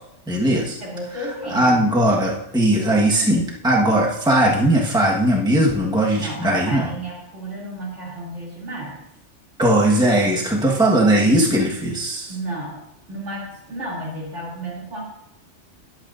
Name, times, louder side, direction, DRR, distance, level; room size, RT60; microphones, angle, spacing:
voice 1, 0.3-0.8 1.5-6.9 9.6-12.3, right 1 dB, 5° right, -2 dB, 1.3 m, -18 dB
voice 2, 0.8-1.9 6.1-9.0 12.3-12.8 13.1-15.0, right 1 dB, 75° right, -4 dB, 3.3 m, -32 dB
20.5 x 8.3 x 2.6 m, 0.80 s
omnidirectional pair, 1.3 m